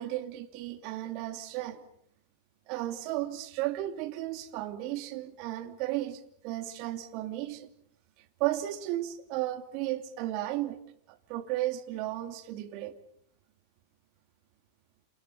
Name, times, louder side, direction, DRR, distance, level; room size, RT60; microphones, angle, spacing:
voice 1, 0.0-1.8 2.7-7.7 8.4-10.8 11.1-13.0, right 14 dB, 45° right, 2.7 m, -34 dB
29.0 x 28.5 x 5.8 m
figure-of-eight pair, 90°, 0 cm